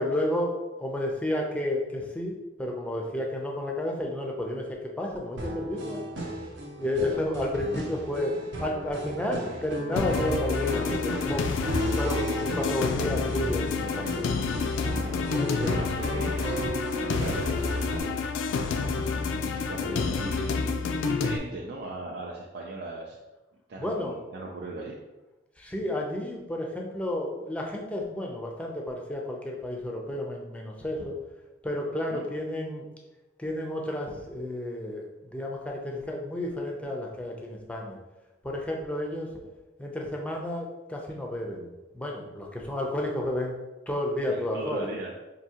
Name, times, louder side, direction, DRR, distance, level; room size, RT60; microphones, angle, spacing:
voice 1, 0.0-6.0 6.8-8.3 8.6-11.4 12.0-14.3 15.3-15.7 23.8-24.2 25.6-31.2 31.6-32.9 33.4-38.0 38.4-39.3 39.8-43.6 43.9-44.9, left 1 dB, 5° left, 0 dB, 0.4 m, -31 dB
sound 1, 5.4-18.0, right 1 dB, 70° right, 0.8 m, -35 dB
voice 2, 6.8-7.2 15.2-16.6 16.9-18.2 19.5-23.2 23.7-25.0 32.1-32.3 44.3-45.1, right 2 dB, 55° right, -2 dB, 0.4 m, -39 dB
sound 2, 10.0-21.4, left 4 dB, 80° left, 0.3 m, -29 dB
4.6 x 2.7 x 2.8 m, 1.1 s
head